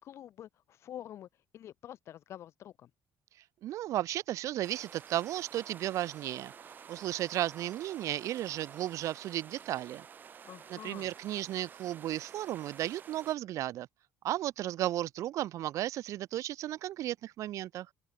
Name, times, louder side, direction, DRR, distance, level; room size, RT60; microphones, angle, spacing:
voice 1, 0.0-1.3 1.5-2.9 10.4-11.1, left 11 dB, 45° left, 4.3 m, -47 dB
voice 2, 3.6-6.5 6.9-10.0 10.7-13.9 14.2-17.9, right 13 dB, 55° right, 2.4 m, -34 dB
sound 1, 4.6-13.4, right 7 dB, 30° right, 4.0 m, -51 dB
open air
cardioid pair, 175°, 6 cm